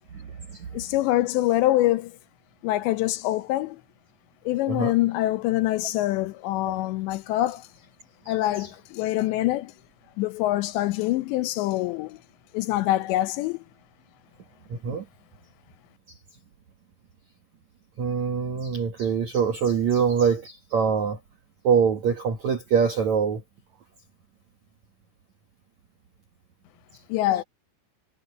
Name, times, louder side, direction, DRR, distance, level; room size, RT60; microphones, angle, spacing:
voice 1, 0.1-0.7 4.7-4.9 8.2-8.7 14.7-15.0 18.0-21.2 21.6-23.4, right 6 dB, 75° right, 1.6 m, -24 dB
voice 2, 0.7-2.1 2.6-3.8 4.5-7.7 8.3-9.7 10.2-12.2 12.5-13.6 27.1-27.4, left 15 dB, 75° left, 2.8 m, -25 dB
omnidirectional pair, 5.7 m